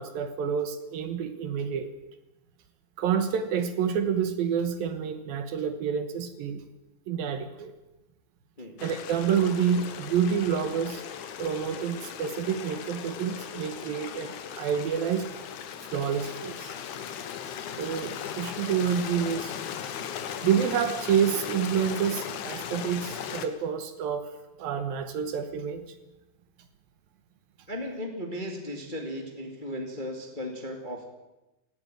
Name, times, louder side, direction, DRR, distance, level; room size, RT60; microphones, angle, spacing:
voice 1, 0.0-1.9 3.0-6.6 7.1-7.7 8.8-11.0 11.4-15.3 15.9-16.7 17.8-19.5 20.4-24.3 24.6-25.8, right 7 dB, 70° right, 9 dB, 2.9 m, -28 dB
Stream, 8.8-23.5, left 8 dB, 60° left, 2.4 m, -38 dB
voice 2, 27.7-31.1, equal, 15° left, 2 dB, 1.7 m, -36 dB
17.5 x 17.0 x 9.2 m, 1.0 s
omnidirectional pair, 4.6 m